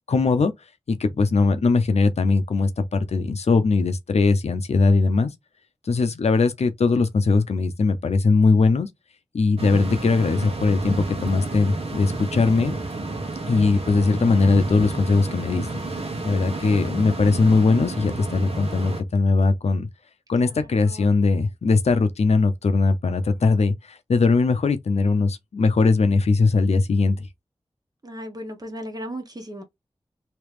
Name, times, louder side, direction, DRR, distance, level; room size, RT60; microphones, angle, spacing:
voice 1, 0.1-0.5 0.9-5.3 5.9-8.9 9.3-12.8 13.5-15.7 16.2-19.9 20.3-27.3, left 4 dB, 85° left, 0.6 m, -20 dB
sound 1, 9.6-19.0, right 2 dB, 65° right, 1.2 m, -31 dB
voice 2, 20.6-21.1 28.0-29.6, equal, 35° right, 1.2 m, -36 dB
3.2 x 2.9 x 3.3 m
wide cardioid pair, 75°, 11 cm